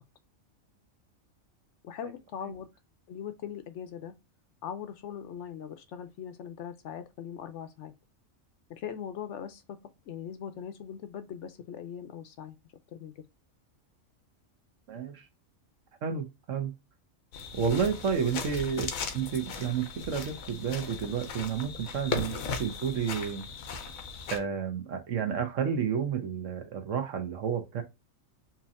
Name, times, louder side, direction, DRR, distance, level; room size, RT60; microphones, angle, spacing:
voice 1, 1.8-2.7 3.1-4.1 4.6-7.9 8.7-9.8 10.1-12.6 12.9-13.1, left 8 dB, 65° left, 0.8 m, -40 dB
voice 2, 14.9-15.3 16.0-16.7 17.5-18.9 19.1-23.5 24.3-27.8, right 7 dB, 70° right, 1.2 m, -31 dB
sound 1, 17.3-24.4, left 5 dB, 90° left, 1.2 m, -37 dB
4.4 x 2.8 x 2.4 m
omnidirectional pair, 1.4 m